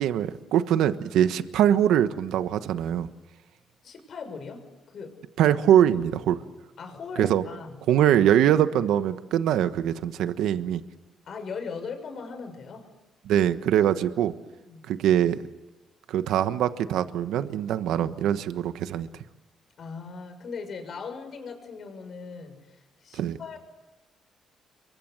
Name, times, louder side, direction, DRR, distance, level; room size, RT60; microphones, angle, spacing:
voice 1, 0.0-3.1 5.4-6.4 7.2-7.4 7.9-10.8 13.3-14.3 14.9-15.4 16.1-19.1 23.1-23.4, right 10 dB, 85° right, 11 dB, 1.3 m, -23 dB
voice 2, 3.8-5.2 5.5-5.6 6.2-6.4 6.8-7.8 11.2-12.9 14.6-14.9 19.8-23.6, left 5 dB, 55° left, 6 dB, 6.8 m, -39 dB
29.0 x 24.0 x 8.0 m, 1.1 s
cardioid pair, 90°, 0 cm